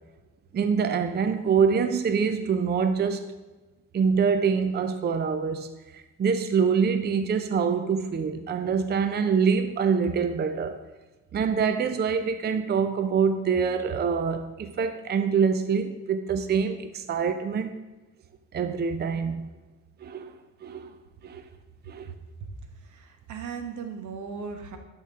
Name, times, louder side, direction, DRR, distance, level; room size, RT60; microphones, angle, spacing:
voice 1, 0.5-3.2 3.9-5.7 5.9-10.8 11.3-17.7 18.5-19.5 20.0-20.3 20.6-20.9 21.2-21.4 21.9-22.1, right 6 dB, 35° right, 9 dB, 0.5 m, -25 dB
voice 2, 22.8-24.8, right 6 dB, 75° right, 6 dB, 1.1 m, -37 dB
11.0 x 4.4 x 3.6 m, 1.2 s
cardioid pair, 90°, 30 cm